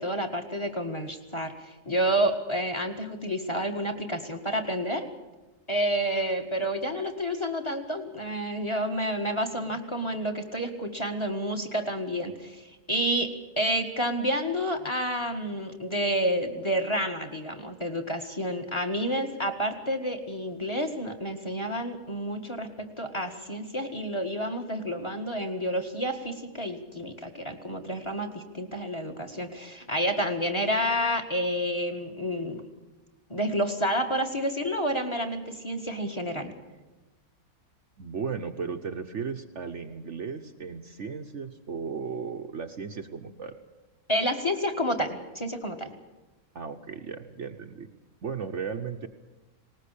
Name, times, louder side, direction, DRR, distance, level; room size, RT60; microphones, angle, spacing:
voice 1, 0.0-5.1 5.7-22.7 23.0-32.6 33.3-36.5 44.1-45.9, equal, 20° left, 6 dB, 1.8 m, -29 dB
voice 2, 38.0-43.6 46.5-47.9 48.2-49.1, right 6 dB, 55° right, 5 dB, 1.2 m, -35 dB
19.5 x 19.0 x 8.5 m, 1.1 s
omnidirectional pair, 1.6 m